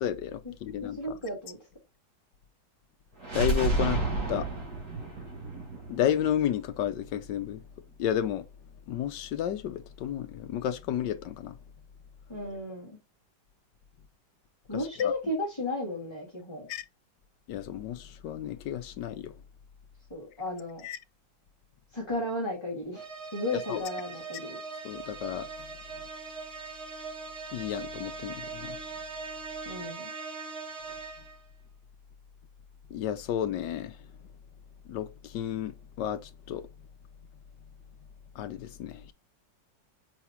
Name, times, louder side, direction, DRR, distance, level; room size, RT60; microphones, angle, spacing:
voice 1, 0.0-1.0 3.3-4.0 4.3-4.5 5.9-7.6 8.0-8.4 8.9-11.6 14.7-15.1 16.7-16.8 17.5-19.3 20.8-21.0 23.7-23.8 24.8-25.5 27.5-28.8 32.9-34.0 34.9-36.7 38.3-39.1, left 10 dB, 75° left, 1.3 m, -32 dB
voice 2, 0.8-1.6 12.3-13.0 14.7-16.7 20.1-20.9 21.9-24.6 29.7-30.1, left 2 dB, 15° left, 2.2 m, -34 dB
sound 1, 3.2-7.1, right 2 dB, 60° right, 2.6 m, -31 dB
sound 2, 23.0-31.5, right 4 dB, 35° right, 1.8 m, -41 dB
7.0 x 4.9 x 2.8 m
omnidirectional pair, 2.0 m